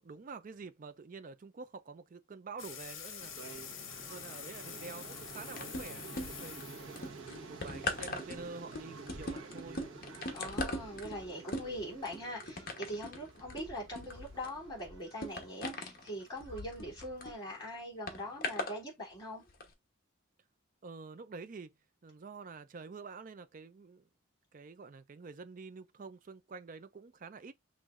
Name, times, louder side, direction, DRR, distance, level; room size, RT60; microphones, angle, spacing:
voice 1, 0.0-3.3 4.0-7.1 7.5-9.8 20.8-21.7 22.0-24.0 24.5-27.5, right 4 dB, 40° right, 0.4 m, -48 dB
sound 1, 2.6-7.9, left 8 dB, 75° left, 0.8 m, -47 dB
sound 2, 3.2-17.8, right 4 dB, 80° right, 1.0 m, -51 dB
sound 3, 5.6-6.6 7.0-17.3 18.1-18.8 19.5-19.6, left 2 dB, 45° left, 0.9 m, -40 dB
voice 2, 10.3-19.4, equal, 20° left, 2.8 m, -42 dB
6.2 x 3.1 x 2.4 m
head